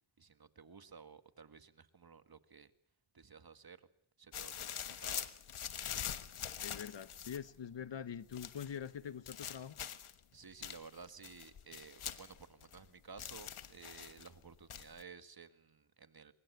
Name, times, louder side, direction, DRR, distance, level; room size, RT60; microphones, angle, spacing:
voice 1, 0.2-2.7 3.1-3.8 4.2-5.3 10.3-16.3, right 5 dB, 45° right, 1.8 m, -55 dB
sound 1, 4.3-7.5 8.3-8.8 9.3-10.2 10.6-12.9 13.2-14.3 14.7-15.0, left 9 dB, 75° left, 1.4 m, -44 dB
voice 2, 6.6-9.8, left 8 dB, 60° left, 1.1 m, -44 dB
24.0 x 21.5 x 8.0 m
cardioid pair, 45°, 50 cm